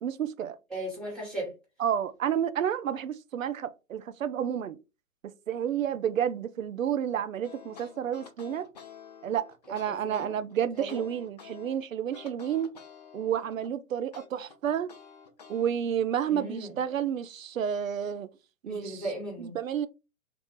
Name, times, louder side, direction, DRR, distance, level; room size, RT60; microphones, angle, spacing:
voice 1, 0.0-0.6 1.8-4.8 5.5-8.7 9.2-12.7 13.1-14.9 15.5-18.3 18.6-19.0 19.4-19.9, right 9 dB, 65° right, 0.5 m, -30 dB
voice 2, 0.7-1.6 9.9-10.4 10.7-11.0 16.3-16.7 18.7-19.6, right 1 dB, ahead, 1.1 m, -37 dB
sound 1, 7.4-11.8 12.1-13.7 14.1-15.7, left 7 dB, 30° left, 0.5 m, -50 dB
3.7 x 2.4 x 3.0 m
figure-of-eight pair, 125°, 43 cm